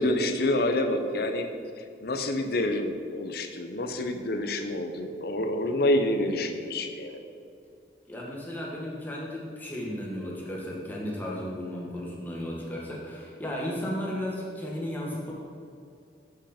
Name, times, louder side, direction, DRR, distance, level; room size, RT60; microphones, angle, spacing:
voice 1, 0.0-1.5 1.8-7.2, left 1 dB, 55° left, 7 dB, 0.6 m, -28 dB
voice 2, 8.1-15.3, left 1 dB, 10° left, -4 dB, 1.4 m, -34 dB
8.0 x 5.4 x 5.1 m, 2.3 s
head